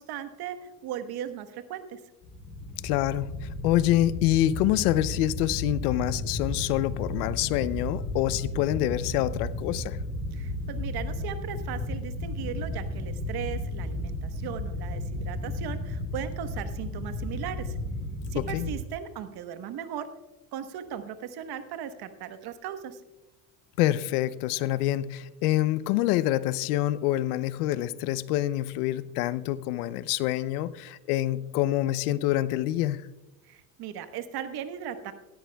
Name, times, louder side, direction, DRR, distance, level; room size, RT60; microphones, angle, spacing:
voice 1, 0.0-2.0 10.3-17.8 18.3-20.1 20.5-23.0 33.4-35.1, right 9 dB, 55° right, 10 dB, 1.2 m, -37 dB
sound 1, 2.2-18.8, left 1 dB, 45° left, 3.1 m, -34 dB
voice 2, 2.8-10.0 18.3-18.7 23.8-33.1, left 14 dB, 80° left, 17 dB, 0.7 m, -26 dB
17.5 x 13.5 x 2.3 m, 1.0 s
supercardioid pair, 85°, 44 cm